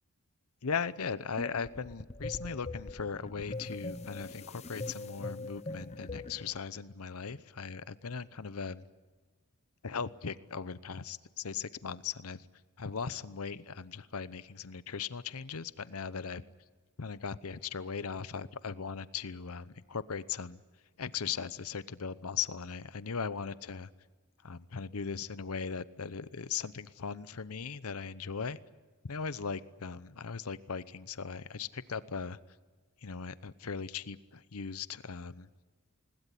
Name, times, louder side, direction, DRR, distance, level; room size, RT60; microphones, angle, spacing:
voice 1, 0.6-8.8 9.8-12.5 12.8-16.4 17.0-20.6 21.0-23.9 24.4-28.6 29.0-32.4 33.0-35.5, left 6 dB, 85° left, 16 dB, 0.8 m, -38 dB
sound 1, 1.4-6.5, left 2 dB, 30° left, 0.8 m, -42 dB
21.0 x 20.0 x 10.0 m, 1.3 s
head